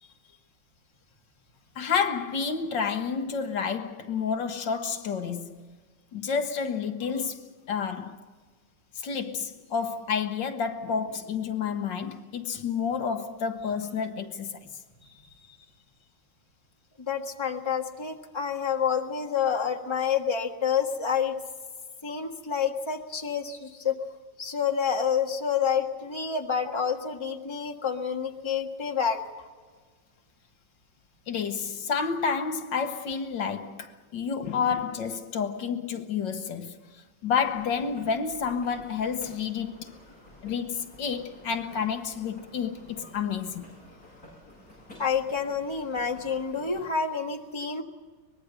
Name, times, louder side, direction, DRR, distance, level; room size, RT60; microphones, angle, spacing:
voice 1, 1.7-5.7 6.1-8.2 8.9-14.6 31.3-36.8 37.2-39.9 40.4-43.7, left 6 dB, 70° left, 1.7 m, -30 dB
voice 2, 17.0-21.3 22.0-24.0 24.4-29.2 45.0-47.8, left 7 dB, 15° left, 1.5 m, -28 dB
sound 1, 37.4-46.8, left 1 dB, 45° left, 8.5 m, -51 dB
24.0 x 20.0 x 6.6 m
omnidirectional pair, 2.1 m